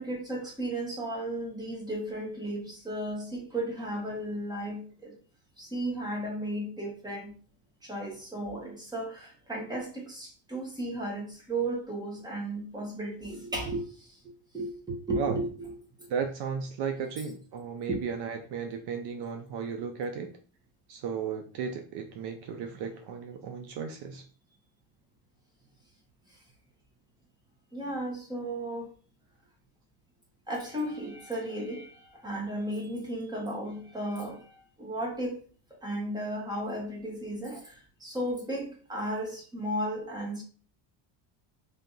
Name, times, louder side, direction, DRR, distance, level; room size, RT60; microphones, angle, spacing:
voice 1, 0.0-5.1 5.6-7.3 7.8-15.7 16.0-16.1 17.9-18.0 27.7-28.9 30.5-35.4 35.7-40.4, right 1 dB, 10° right, -1 dB, 1.2 m, -35 dB
voice 2, 16.1-20.3 20.9-24.2, right 6 dB, 60° right, 5 dB, 0.6 m, -35 dB
3.4 x 2.8 x 3.9 m, 0.41 s
cardioid pair, 150°, 48 cm